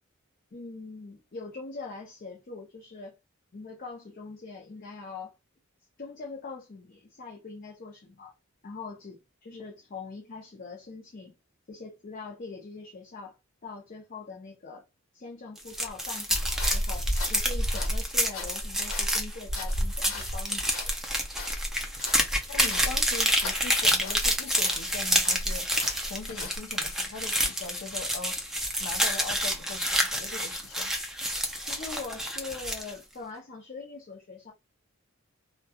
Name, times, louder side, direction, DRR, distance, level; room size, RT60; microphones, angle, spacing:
voice 1, 0.5-3.2 3.5-5.4 6.0-8.3 8.6-11.4 11.7-13.4 13.6-14.8 15.1-20.9 31.6-34.5, left 4 dB, 45° left, 0.6 m, -42 dB
sound 1, 15.6-32.9, equal, ahead, 0.4 m, -28 dB
sound 2, 16.3-24.4 24.6-26.6, equal, 75° left, 1.0 m, -34 dB
voice 2, 22.5-25.7 26.0-28.4 28.8-30.9, left 4 dB, 90° left, 0.6 m, -40 dB
2.8 x 2.2 x 2.2 m
head